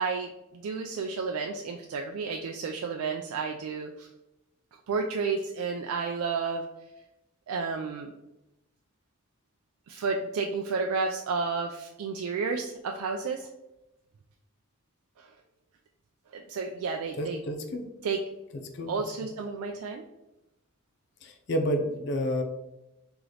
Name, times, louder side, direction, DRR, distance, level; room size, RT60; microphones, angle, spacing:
voice 1, 0.0-4.1 4.9-6.7 7.5-8.1 9.9-13.5 15.2-15.3 16.3-17.4 18.0-18.2 18.9-20.0, right 4 dB, 80° right, 3 dB, 0.3 m, -31 dB
voice 2, 17.2-17.8 18.7-18.9 21.2-22.4, equal, 50° left, 6 dB, 0.4 m, -29 dB
3.8 x 2.9 x 3.2 m, 0.91 s
head